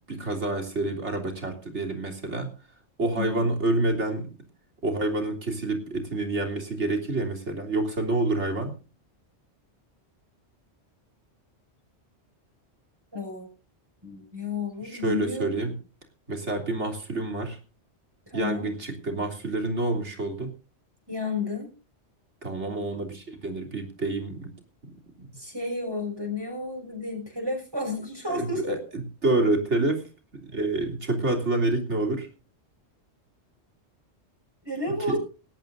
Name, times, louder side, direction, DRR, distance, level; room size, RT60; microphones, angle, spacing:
voice 1, 0.1-2.5 3.0-4.3 4.8-8.7 14.9-15.7 16.3-17.6 18.3-20.5 22.4-24.5 24.8-25.3 28.3-28.8 29.2-30.0 30.4-32.3 35.1-35.2, right 2 dB, 80° right, 3 dB, 3.7 m, -28 dB
voice 2, 3.1-3.5 13.1-13.5 14.0-15.5 18.3-18.7 21.1-21.7 25.3-28.8 34.6-35.2, left 2 dB, 20° right, 2 dB, 6.3 m, -32 dB
19.0 x 16.0 x 2.6 m, 0.34 s
omnidirectional pair, 1.2 m